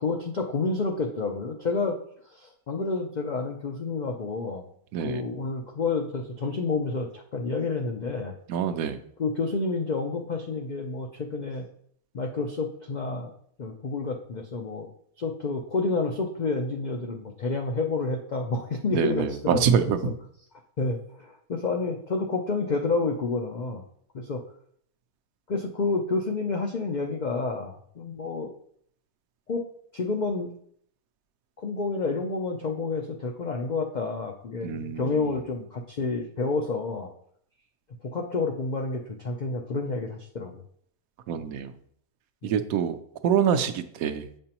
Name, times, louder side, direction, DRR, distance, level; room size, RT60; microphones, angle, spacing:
voice 1, 0.0-2.0 2.3-4.7 5.0-8.4 9.2-11.7 12.1-13.3 13.6-14.9 15.2-20.1 20.8-23.8 24.1-24.4 25.5-28.5 29.5-29.6 29.9-30.5 31.6-37.1 38.0-40.6 42.4-42.5, left 3 dB, 85° left, 3 dB, 0.4 m, -29 dB
voice 2, 4.9-5.2 8.5-9.0 18.9-20.1 34.6-35.3 41.3-41.7 42.4-43.0 43.2-44.3, right 8 dB, 80° right, 9 dB, 1.0 m, -25 dB
7.6 x 5.3 x 2.9 m, 0.65 s
omnidirectional pair, 1.5 m